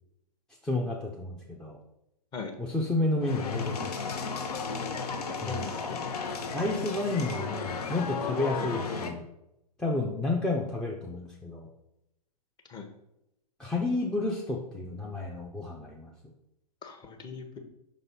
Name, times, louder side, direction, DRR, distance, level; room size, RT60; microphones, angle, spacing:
voice 1, 0.6-1.8 2.6-3.9 5.4-5.7 6.5-9.2 9.8-11.7 13.6-16.1, left 2 dB, 5° left, -1 dB, 0.5 m, -31 dB
sound 1, 3.2-9.1, left 4 dB, 65° left, 0.9 m, -34 dB
voice 2, 5.4-6.0 8.6-8.7 12.7-12.9 16.8-17.6, left 5 dB, 20° left, 4 dB, 0.9 m, -39 dB
5.4 x 4.0 x 5.4 m, 0.85 s
figure-of-eight pair, 115°, 21 cm